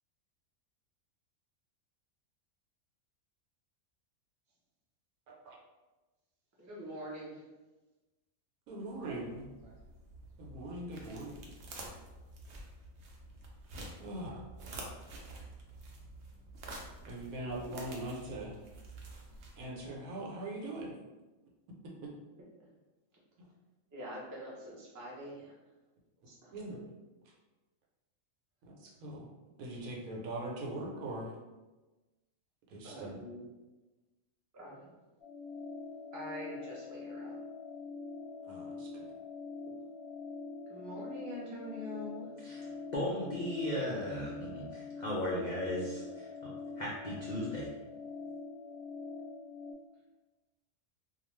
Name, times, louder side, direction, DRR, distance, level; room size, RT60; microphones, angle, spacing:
voice 1, 6.6-7.4 12.5-12.6 23.9-25.5 26.3-26.5 32.8-33.4 34.5-34.9 36.1-37.3 40.7-42.3, equal, 20° right, -6 dB, 0.4 m, -44 dB
voice 2, 8.7-9.5 10.4-11.4 14.0-14.4 17.1-18.6 19.6-20.9 21.8-22.1 26.5-26.8 27.3-27.4 28.6-29.3 29.6-31.4 32.7-33.2 38.4-39.1, right 1 dB, 85° right, -2 dB, 1.1 m, -41 dB
sound 1, 8.9-19.9, right 2 dB, 65° right, 0.7 m, -49 dB
sound 2, 35.2-49.7, left 4 dB, 60° left, 0.7 m, -44 dB
voice 3, 42.9-47.7, left 1 dB, 75° left, -6 dB, 0.4 m, -36 dB
2.4 x 2.3 x 3.1 m, 1.1 s
omnidirectional pair, 1.4 m